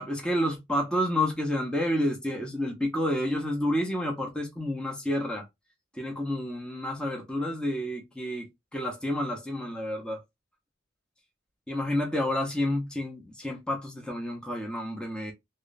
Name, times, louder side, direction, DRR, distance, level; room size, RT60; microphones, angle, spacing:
voice 1, 0.0-5.4 5.9-10.2 11.7-15.3, left 1 dB, 5° left, 0.8 m, -29 dB
3.2 x 2.4 x 3.9 m
head